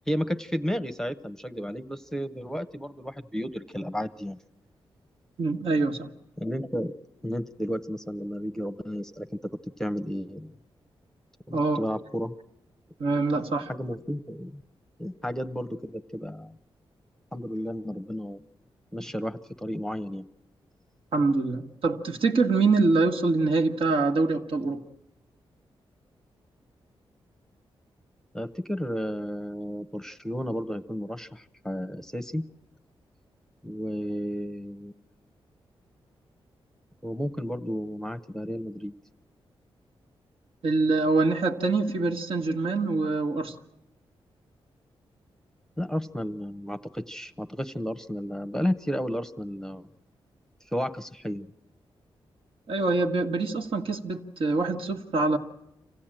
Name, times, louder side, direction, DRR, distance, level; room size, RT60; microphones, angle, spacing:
voice 1, 0.1-4.4 6.4-6.9 7.2-9.4 9.8-10.5 11.5-12.3 13.3-13.4 13.7-14.6 15.0-16.6 17.3-18.4 18.9-20.3 28.3-32.5 33.6-34.9 37.0-38.9 45.8-49.9 50.7-51.5, equal, 5° left, 11 dB, 0.8 m, -32 dB
voice 2, 5.4-6.1 11.5-11.8 13.0-13.7 21.1-24.8 40.6-43.5 52.7-55.4, right 3 dB, 70° right, 4 dB, 1.7 m, -25 dB
26.0 x 16.0 x 9.0 m, 0.88 s
cardioid pair, 80°, 10 cm